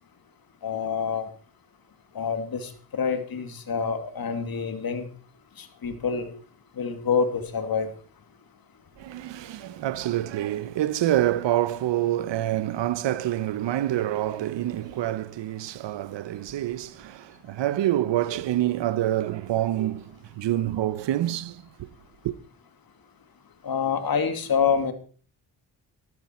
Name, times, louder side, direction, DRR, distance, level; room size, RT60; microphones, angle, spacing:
voice 1, 0.6-1.3 2.2-5.1 5.6-6.3 6.8-7.9 23.6-24.9, left 6 dB, 50° left, 2.3 m, -27 dB
voice 2, 9.0-21.9 22.2-22.3, right 13 dB, 65° right, 1.0 m, -27 dB
13.5 x 12.5 x 4.4 m
cardioid pair, 70°, 46 cm